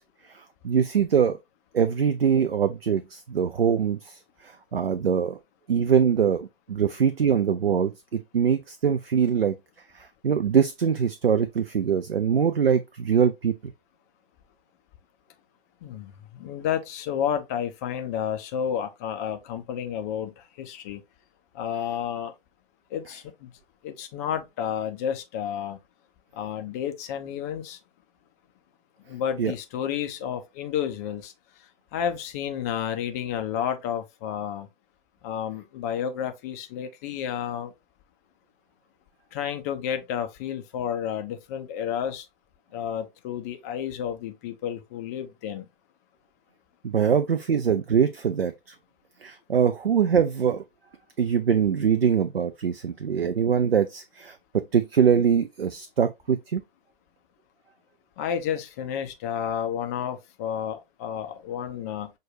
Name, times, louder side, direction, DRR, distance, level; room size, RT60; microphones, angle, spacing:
voice 1, 0.3-1.4 1.7-5.4 5.7-9.6 9.9-13.5 29.4-29.5 46.8-48.7 49.2-50.6 51.2-56.6, right 7 dB, 90° right, 0.5 m, -23 dB
voice 2, 15.8-20.3 20.6-21.0 21.5-22.3 22.9-23.5 23.8-25.8 26.3-27.8 29.1-31.3 31.9-34.7 35.2-37.7 39.3-42.2 42.7-45.7 58.2-62.1, left 9 dB, 20° left, 0.3 m, -31 dB
6.0 x 2.3 x 3.1 m
figure-of-eight pair, 115°, 29 cm